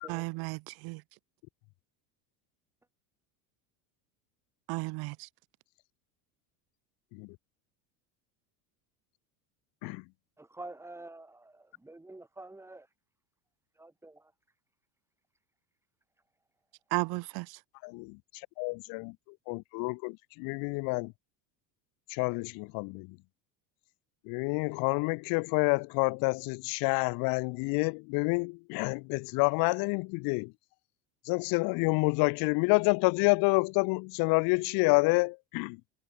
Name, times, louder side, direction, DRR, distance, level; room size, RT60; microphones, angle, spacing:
voice 1, 0.1-1.0 4.7-5.3 16.9-17.6, right 28 dB, 60° right, 2.4 m, -34 dB
voice 2, 10.4-12.9 13.8-14.3, right 2 dB, 5° right, 7.2 m, -47 dB
voice 3, 18.6-19.1 19.5-21.1 22.2-23.1 24.3-30.5 31.3-35.8, left 30 dB, 55° left, 0.8 m, -28 dB
cardioid pair, 150°, 42 cm